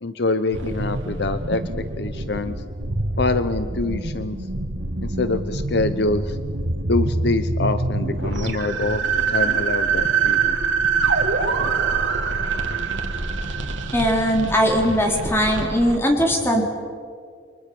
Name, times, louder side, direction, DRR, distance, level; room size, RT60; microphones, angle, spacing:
voice 1, 0.0-1.6 2.0-2.5 3.2-4.4 5.0-6.4 6.9-9.0 9.3-10.6, left 3 dB, 60° left, 11 dB, 0.9 m, -25 dB
sound 1, 0.5-16.0, right 4 dB, 90° right, 2.1 m, -25 dB
voice 2, 13.9-16.6, equal, 15° left, 1 dB, 3.8 m, -20 dB
29.5 x 24.0 x 7.0 m, 2.1 s
head